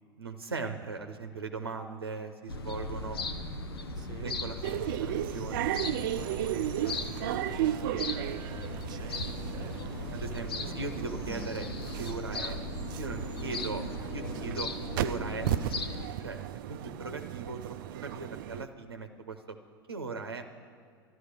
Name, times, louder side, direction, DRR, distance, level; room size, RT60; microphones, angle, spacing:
voice 1, 0.2-3.2 4.2-4.6 4.8-5.7 10.1-11.7 12.0-12.6 13.0-14.7 15.0-15.5 16.2-17.8 18.0-19.6 19.9-20.5, right 4 dB, 90° right, 5 dB, 0.8 m, -39 dB
sound 1, 2.5-16.1, left 2 dB, 75° left, 0.9 m, -38 dB
voice 2, 3.9-4.4 5.9-11.0, right 7 dB, 35° right, 7 dB, 0.9 m, -48 dB
sound 2, 4.6-18.6, right 12 dB, 60° right, 0.4 m, -35 dB
sound 3, 10.6-13.0 13.4-15.6, right 1 dB, 10° right, 1.1 m, -50 dB
13.0 x 11.0 x 6.6 m, 2.2 s
figure-of-eight pair, 85°, 13 cm